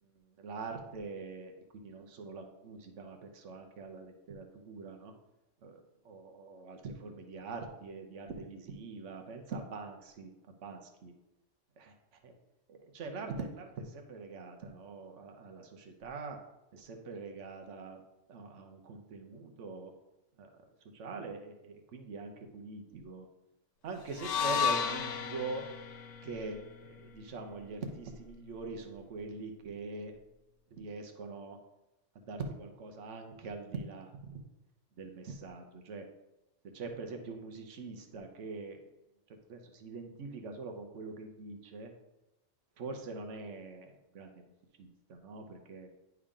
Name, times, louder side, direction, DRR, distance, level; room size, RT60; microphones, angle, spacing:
voice 1, 0.0-5.1 5.6-10.3 10.6-11.1 11.8-11.9 12.7-16.4 16.7-18.0 18.3-19.9 20.4-20.5 20.9-23.3 23.8-25.6 26.2-30.1 30.7-31.6 32.1-34.4 35.0-36.0 36.7-38.8 39.5-41.9 42.8-44.5 44.8-45.9, right 3 dB, 75° right, 4 dB, 1.2 m, -43 dB
sound 1, 24.1-28.3, left 7 dB, 80° left, 0.9 m, -35 dB
9.9 x 3.6 x 3.7 m, 0.94 s
omnidirectional pair, 1.3 m